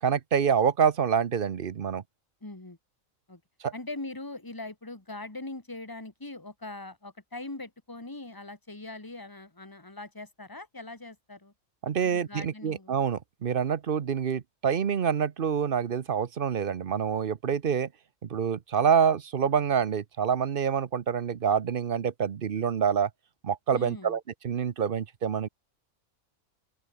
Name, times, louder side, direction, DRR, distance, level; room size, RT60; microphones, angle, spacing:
voice 1, 0.0-2.0 3.6-3.7 11.8-17.9 18.2-23.1 23.4-25.5, right 7 dB, 45° right, 0.9 m, -27 dB
voice 2, 2.4-2.8 3.3-3.4 3.7-11.5 12.0-13.0 23.7-24.2, left 2 dB, 15° left, 2.3 m, -41 dB
open air
omnidirectional pair, 1.5 m